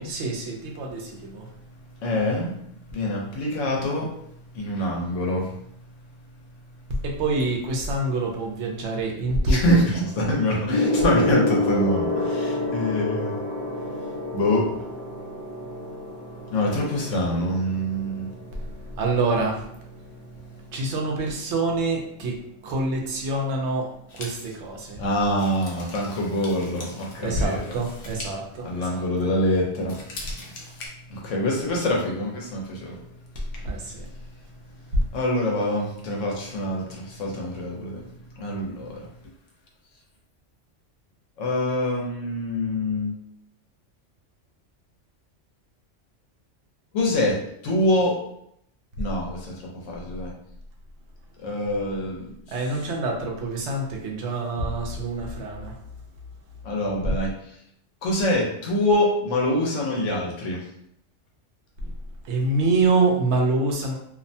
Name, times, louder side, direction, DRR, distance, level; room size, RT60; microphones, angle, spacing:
voice 1, 0.0-1.5 6.9-10.4 19.0-19.6 20.7-25.0 27.2-29.3 33.6-34.1 34.9-35.0 52.5-55.8 61.8-61.9 62.2-63.9, right 2 dB, 70° right, 0 dB, 0.8 m, -26 dB
voice 2, 2.0-2.6 2.9-4.1 4.5-5.5 9.5-13.4 14.3-14.8 16.5-18.3 25.0-27.6 28.6-29.9 31.1-33.0 35.1-38.0 38.4-39.0 41.4-43.1 46.9-47.4 47.6-48.2 49.0-49.5 49.9-50.3 51.4-52.3 56.6-57.3 58.0-60.6, left 1 dB, 80° left, -1 dB, 1.1 m, -25 dB
Gong, 10.7-20.4 21.4-21.7, left 2 dB, 40° right, 0.4 m, -29 dB
sound 1, 24.1-29.4 29.7-30.9, left 2 dB, 55° left, 0.7 m, -42 dB
2.6 x 2.1 x 2.6 m, 0.73 s
omnidirectional pair, 1.3 m